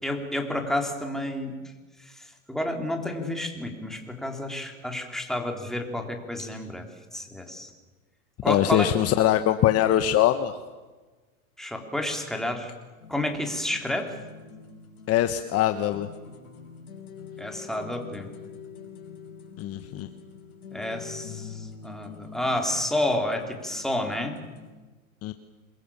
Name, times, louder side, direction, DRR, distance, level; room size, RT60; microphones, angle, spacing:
voice 1, 0.0-1.6 2.0-7.7 8.4-8.9 11.6-12.7 13.1-14.1 17.4-18.3 20.7-24.4, left 1 dB, ahead, 3 dB, 3.6 m, -30 dB
voice 2, 8.5-10.5 15.1-16.1 19.6-20.1 25.2-25.3, left 12 dB, 35° left, 9 dB, 1.2 m, -22 dB
sound 1, 13.0-24.7, left 6 dB, 90° left, 5.8 m, -45 dB
27.0 x 22.5 x 7.3 m, 1.3 s
hypercardioid pair, 120°, 43 cm